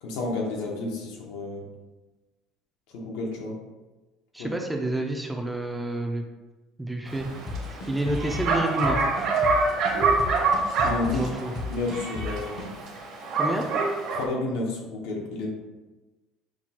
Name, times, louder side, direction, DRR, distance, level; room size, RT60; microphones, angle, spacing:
voice 1, 0.0-1.6 2.9-3.6 4.4-4.5 10.8-11.2 11.7-12.7 14.1-15.5, left 2 dB, 80° left, 0 dB, 0.9 m, -31 dB
voice 2, 4.3-6.2 6.8-7.3 7.7-9.0 11.1-11.5 13.4-13.7, right 2 dB, 5° right, 2 dB, 0.3 m, -29 dB
Bark, 7.1-14.2, right 3 dB, 50° right, 0.7 m, -26 dB
sound 1, 7.5-12.7, left 4 dB, 35° left, 0.6 m, -34 dB
5.9 x 2.3 x 2.8 m, 1.2 s
cardioid pair, 150°, 0 cm